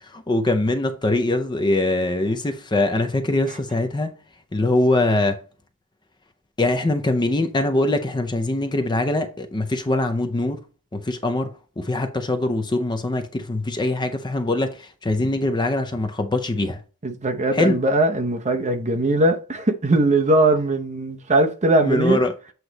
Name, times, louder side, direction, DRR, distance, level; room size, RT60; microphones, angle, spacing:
voice 1, 0.1-4.1 4.5-5.4 6.6-10.6 10.9-11.5 11.8-16.8 17.5-17.8 21.8-22.3, left 2 dB, 20° left, 0.5 m, -22 dB
voice 2, 17.0-22.2, right 2 dB, 35° right, 0.7 m, -20 dB
8.0 x 3.1 x 3.9 m
head